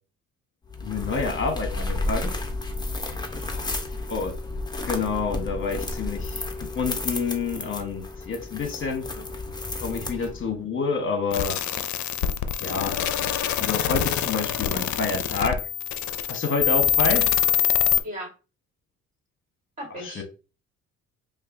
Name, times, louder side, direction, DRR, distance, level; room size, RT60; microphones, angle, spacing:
sound 1, 0.7-10.6, left 2 dB, 15° left, 0.8 m, -32 dB
voice 1, 0.8-2.3 4.1-4.4 4.8-9.1 9.8-11.6 12.6-13.0 13.6-15.6 16.3-17.3 20.0-20.2, left 4 dB, 40° left, 1.2 m, -28 dB
voice 2, 3.4-3.7 9.0-9.3 18.0-18.3 19.8-20.2, equal, 25° right, 1.7 m, -38 dB
sound 2, 11.3-18.0, left 10 dB, 70° left, 0.5 m, -24 dB
5.2 x 2.4 x 2.6 m
cardioid pair, 90°, 30 cm